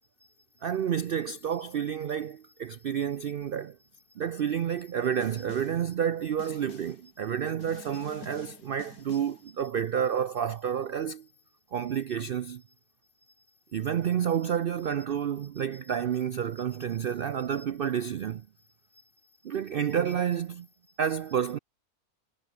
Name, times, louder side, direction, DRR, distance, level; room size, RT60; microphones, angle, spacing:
voice 1, 0.6-3.8 4.2-11.3 11.7-12.6 13.7-18.4 19.4-20.7 21.0-21.6, right 8 dB, 75° right, 0.5 m, -30 dB
Snare drum, 5.2-5.9 6.4-7.1 7.6-9.5, left 6 dB, 70° left, 2.4 m, -50 dB
omnidirectional pair, 1.6 m